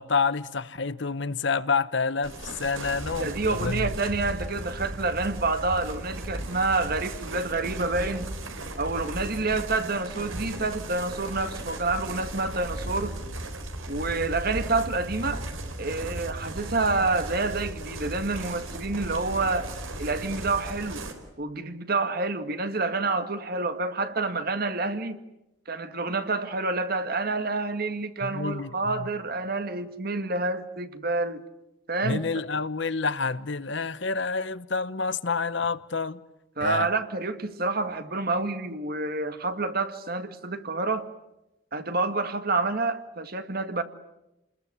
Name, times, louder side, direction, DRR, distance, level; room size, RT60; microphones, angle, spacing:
voice 1, 0.0-3.9 28.2-29.1 32.0-36.2 36.6-36.9, left 4 dB, 60° left, 1.0 m, -28 dB
sound 1, 2.2-21.1, right 1 dB, 85° right, 4.2 m, -36 dB
voice 2, 3.2-8.3 8.8-13.2 13.9-15.4 15.8-19.7 20.0-21.0 21.4-25.2 25.7-31.4 31.9-32.2 36.6-41.1 41.7-43.8, right 3 dB, 45° right, 1.9 m, -28 dB
29.5 x 21.0 x 9.5 m
head